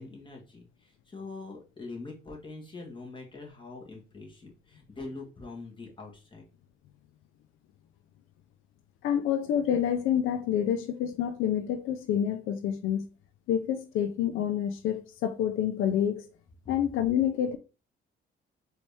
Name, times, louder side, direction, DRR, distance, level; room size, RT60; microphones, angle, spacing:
voice 1, 0.0-6.4 16.6-16.7, left 3 dB, 25° left, 1.7 m, -43 dB
voice 2, 9.0-13.1 13.5-16.3 16.7-17.6, left 9 dB, 85° left, 0.4 m, -28 dB
4.2 x 2.8 x 3.4 m
cardioid pair, 90°, 20 cm